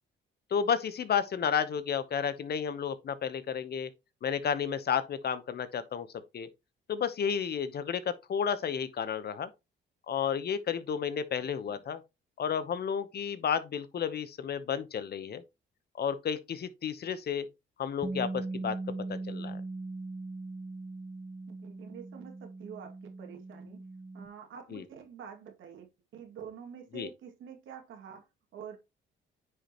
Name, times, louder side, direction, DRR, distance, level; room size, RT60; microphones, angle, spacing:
voice 1, 0.5-3.9 4.2-6.1 6.3-6.5 6.9-9.5 10.1-12.0 12.4-15.4 16.0-17.5 17.8-18.8 19.1-19.6 24.7-24.8 26.9-27.1, left 7 dB, 55° left, 1.0 m, -32 dB
Bass guitar, 18.0-24.3, right 3 dB, 15° right, 0.8 m, -40 dB
voice 2, 21.5-23.8 24.1-28.8, right 8 dB, 80° right, 2.4 m, -47 dB
9.7 x 5.3 x 3.0 m
cardioid pair, 90°, 20 cm